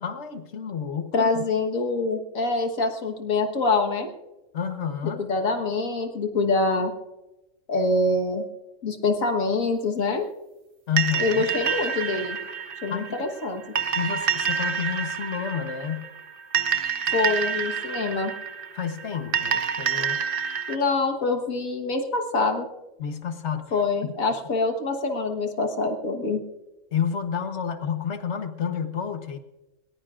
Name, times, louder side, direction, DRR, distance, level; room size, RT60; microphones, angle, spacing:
voice 1, 0.0-1.4 4.5-5.2 10.9-11.4 12.9-13.3 13.9-16.1 18.7-20.2 23.0-23.7 26.9-29.4, left 7 dB, 60° left, 8 dB, 1.3 m, -30 dB
voice 2, 1.1-4.1 5.2-6.9 7.7-8.5 8.8-10.2 11.2-12.4 12.8-13.6 17.1-18.3 20.7-22.7 23.7-26.4, left 3 dB, 80° left, 5 dB, 1.8 m, -25 dB
sound 1, 11.0-20.8, right 7 dB, 45° right, 1.0 m, -28 dB
21.5 x 19.5 x 2.5 m, 1.0 s
omnidirectional pair, 1.4 m